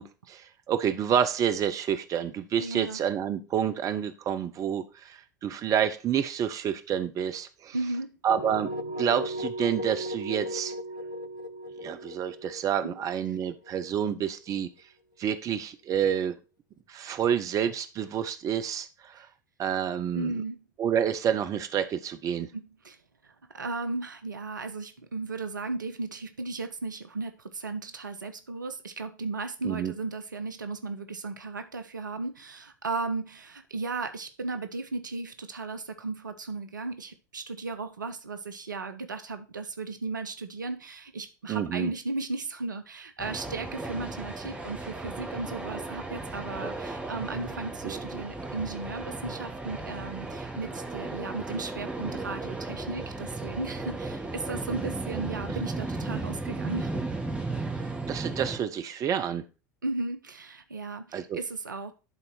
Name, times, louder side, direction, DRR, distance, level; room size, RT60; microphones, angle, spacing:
voice 1, 0.0-7.7 8.2-8.7 9.0-10.7 11.8-14.7 15.2-16.4 16.9-19.3 19.6-20.3 20.8-22.5 29.6-29.9 41.5-41.9 47.8-48.0 58.1-59.4 61.1-61.4, right 8 dB, 35° right, 0.8 m, -28 dB
voice 2, 2.6-3.0 7.7-8.2 12.8-13.0 20.1-20.6 22.5-23.0 23.2-56.9 59.8-61.9, right 3 dB, 80° right, 0.7 m, -35 dB
sound 1, 8.3-14.1, equal, 85° left, 0.5 m, -36 dB
sound 2, 43.2-58.6, right 2 dB, 10° right, 1.8 m, -35 dB
11.0 x 4.0 x 4.4 m
figure-of-eight pair, 75°, 10 cm